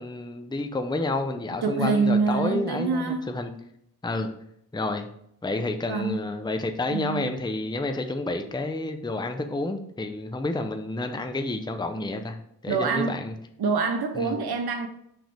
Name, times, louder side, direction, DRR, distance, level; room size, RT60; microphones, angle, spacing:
voice 1, 0.0-3.5 4.0-4.3 4.7-5.1 5.4-12.4 12.6-13.3 14.2-14.4, left 2 dB, 10° left, 0.6 m, -30 dB
voice 2, 1.6-3.3 5.9-6.2 6.9-7.3 12.7-13.2 13.6-14.9, right 4 dB, 70° right, 0.7 m, -25 dB
6.0 x 5.2 x 3.4 m
wide cardioid pair, 60°, 40 cm